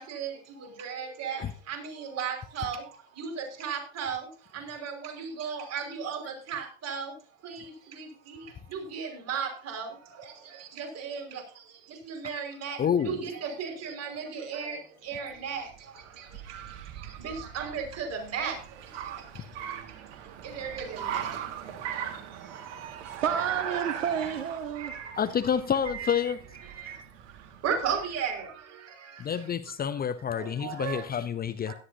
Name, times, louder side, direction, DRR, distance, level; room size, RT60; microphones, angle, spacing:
voice 1, 0.0-7.2 7.4-23.2 24.7-25.3 25.9-26.3 26.6-27.0 27.6-29.5 29.9-30.0 30.4-31.1 31.7-31.8, right 6 dB, 40° right, 5.5 m, -37 dB
voice 2, 12.8-13.2 25.2-26.4 29.2-31.7, left 8 dB, 25° left, 0.8 m, -28 dB
Car, 15.3-28.2, right 9 dB, 60° right, 2.1 m, -40 dB
voice 3, 23.2-24.9, right 8 dB, 80° right, 1.3 m, -30 dB
17.0 x 12.5 x 2.8 m
hypercardioid pair, 75°, 38 cm